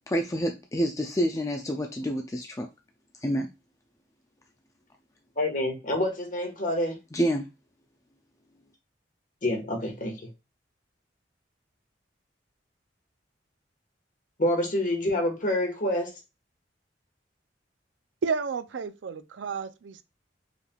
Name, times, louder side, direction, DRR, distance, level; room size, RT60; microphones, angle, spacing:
voice 1, 0.1-2.7 3.2-3.5 7.1-7.5, equal, 20° left, 0.4 m, -28 dB
voice 2, 5.4-7.0 9.4-10.3 14.4-16.1, left 1 dB, 45° left, 1.4 m, -27 dB
voice 3, 18.2-20.0, right 5 dB, 90° right, 0.5 m, -31 dB
5.0 x 3.3 x 2.3 m
head